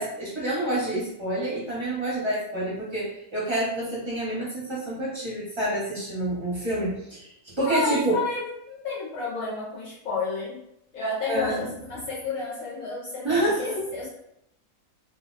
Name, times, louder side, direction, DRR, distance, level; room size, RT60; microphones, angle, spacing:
voice 1, 0.0-8.2 11.3-11.7 13.2-13.9, right 1 dB, 20° right, -8 dB, 1.1 m, -28 dB
voice 2, 7.7-10.6 10.9-14.1, left 4 dB, 70° left, -7 dB, 1.1 m, -31 dB
2.6 x 2.3 x 3.2 m, 0.78 s
omnidirectional pair, 1.4 m